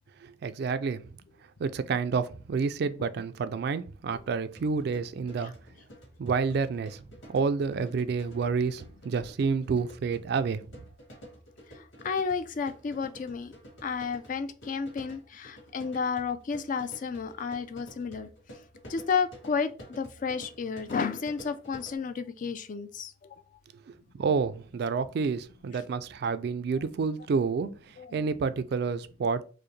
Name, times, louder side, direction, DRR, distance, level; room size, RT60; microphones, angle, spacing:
voice 1, 0.2-1.0 1.6-5.5 6.2-7.0 7.3-10.6 24.1-27.7 28.1-29.4, right 5 dB, 60° right, 0.3 m, -29 dB
sound 1, 4.5-22.0, equal, 75° left, 2.1 m, -51 dB
voice 2, 11.7-13.5 13.8-18.3 18.9-23.1 28.0-28.3, left 5 dB, 45° left, 0.3 m, -32 dB
4.7 x 2.1 x 3.1 m
head